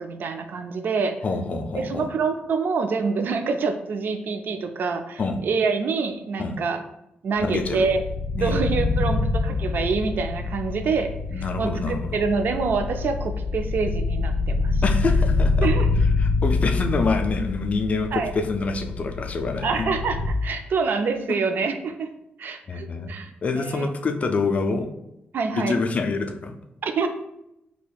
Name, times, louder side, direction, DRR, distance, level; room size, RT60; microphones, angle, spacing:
voice 1, 0.0-1.1 1.8-6.8 7.2-8.0 8.3-14.8 15.6-15.9 18.1-18.3 19.6-22.1 22.4-23.9 25.3-25.8 26.8-27.1, right 4 dB, 60° right, 7 dB, 0.3 m, -26 dB
voice 2, 1.2-2.1 5.2-5.4 6.4-6.6 7.4-7.9 8.4-8.6 8.9-9.2 11.3-12.1 14.8-15.7 16.2-19.9 22.7-23.1 23.4-24.9 25.5-26.6, left 3 dB, 40° left, 6 dB, 0.4 m, -26 dB
sound 1, 7.4-20.3, left 3 dB, ahead, 1.4 m, -25 dB
4.0 x 2.8 x 2.3 m, 0.83 s
wide cardioid pair, 130°, 4 cm